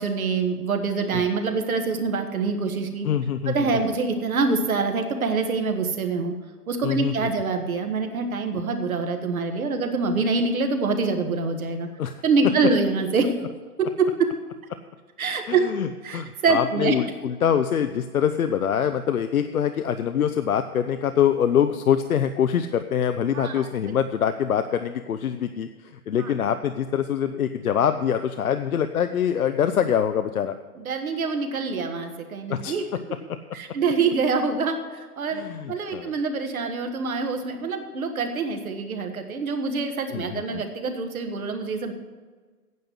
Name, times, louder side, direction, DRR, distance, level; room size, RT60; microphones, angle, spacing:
voice 1, 0.0-3.1 3.4-6.3 6.7-11.9 12.2-13.3 13.8-14.1 15.2-15.7 16.0-16.9 23.3-23.7 26.2-26.3 30.7-32.8 33.5-41.9, right 4 dB, 65° right, 6 dB, 1.7 m, -25 dB
voice 2, 3.0-3.8 6.8-7.1 12.0-12.2 15.5-25.7 26.1-30.6 32.5-32.7 35.3-36.1 40.1-40.6, left 8 dB, 65° left, 8 dB, 0.7 m, -24 dB
9.4 x 7.7 x 8.2 m, 1.4 s
figure-of-eight pair, 110°, 46 cm